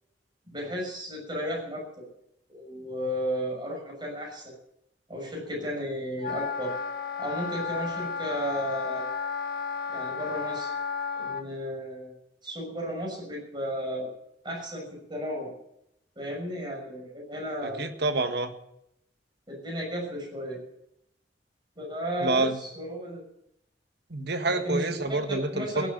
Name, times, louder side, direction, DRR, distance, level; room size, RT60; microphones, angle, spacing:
voice 1, 0.5-2.0 2.5-4.5 5.1-6.7 7.2-9.0 9.9-10.7 11.1-12.1 12.4-14.1 14.4-15.5 16.2-17.8 19.5-20.6 21.8-23.2 24.5-25.9, equal, 25° right, -1 dB, 6.3 m, -34 dB
Wind instrument woodwind instrument, 6.2-11.4, left 5 dB, 60° left, 1.6 m, -33 dB
voice 2, 17.6-18.5 22.2-22.6 24.1-25.9, right 2 dB, 65° right, 8 dB, 1.5 m, -27 dB
16.5 x 8.0 x 9.2 m, 0.81 s
head